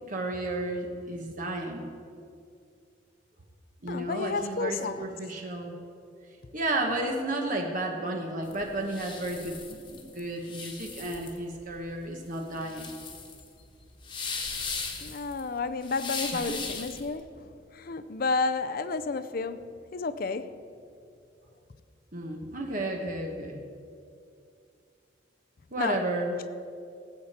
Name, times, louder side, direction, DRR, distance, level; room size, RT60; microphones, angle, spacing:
voice 1, 0.1-1.9 3.8-5.7 6.5-12.9 16.4-16.6 22.1-23.7 25.7-26.4, right 1 dB, 45° right, 1.1 m, -32 dB
voice 2, 3.9-5.2 15.0-20.6 25.8-26.0, left 4 dB, 50° left, 0.5 m, -31 dB
sound 1, 8.4-17.1, left 4 dB, 25° left, 1.3 m, -38 dB
19.0 x 8.3 x 4.3 m
head